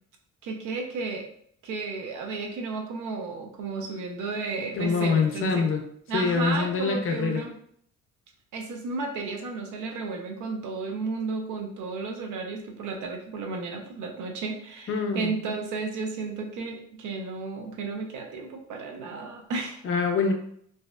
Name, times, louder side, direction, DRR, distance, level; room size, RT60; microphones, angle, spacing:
voice 1, 0.4-1.3 1.6-5.7 6.1-7.5 8.5-19.8, right 4 dB, 80° right, 3 dB, 0.6 m, -33 dB
voice 2, 4.8-5.8 6.1-7.5 14.9-15.3 19.8-20.3, left 5 dB, 45° left, 5 dB, 0.5 m, -25 dB
2.7 x 2.0 x 2.3 m, 0.66 s
cardioid pair, 90°, 30 cm